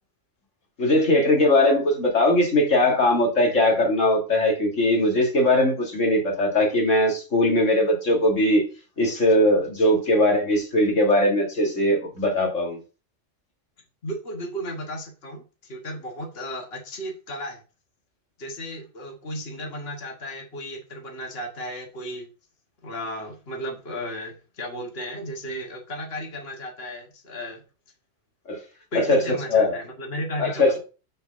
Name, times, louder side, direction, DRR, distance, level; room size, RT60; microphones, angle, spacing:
voice 1, 0.8-8.7 9.0-12.8 28.5-28.6 28.9-29.8 30.4-30.8, left 1 dB, 85° left, 1 dB, 2.6 m, -20 dB
voice 2, 14.0-17.6 18.4-22.3 22.8-27.6 28.9-30.8, equal, 55° left, 1 dB, 1.8 m, -34 dB
6.5 x 4.2 x 6.4 m, 0.34 s
omnidirectional pair, 1.3 m